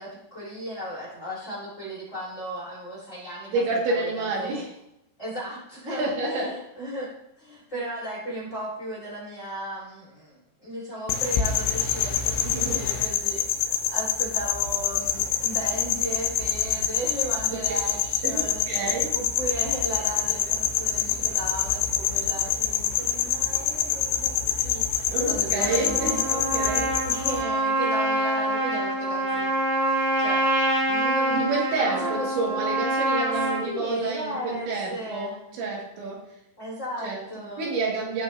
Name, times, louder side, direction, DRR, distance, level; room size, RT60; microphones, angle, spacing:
voice 1, 0.0-3.6 3.9-4.6 5.2-26.2 27.0-29.5 30.2-30.4 30.8-31.5 31.9-32.3 33.6-35.5 36.6-37.7, equal, 15° left, -6 dB, 4.1 m, -36 dB
voice 2, 3.5-4.7 5.9-6.6 12.4-12.8 17.5-17.6 18.2-19.1 25.1-27.0 31.3-36.3 37.0-38.2, right 3 dB, 75° right, -3 dB, 4.4 m, -29 dB
sound 1, 11.1-27.4, left 9 dB, 75° left, 2.8 m, -26 dB
Trumpet, 25.6-33.6, right 1 dB, 45° right, 4.2 m, -25 dB
16.5 x 6.8 x 2.8 m, 0.79 s
omnidirectional pair, 5.3 m